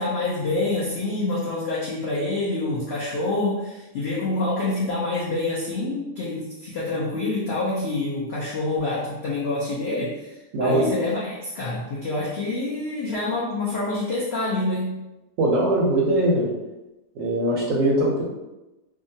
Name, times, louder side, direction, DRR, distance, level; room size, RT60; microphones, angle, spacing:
voice 1, 0.0-15.0, left 2 dB, 75° left, -6 dB, 0.5 m, -27 dB
voice 2, 10.5-10.9 15.4-16.5 17.2-18.2, right 1 dB, 70° right, -2 dB, 0.8 m, -21 dB
2.7 x 2.3 x 2.6 m, 0.99 s
omnidirectional pair, 1.7 m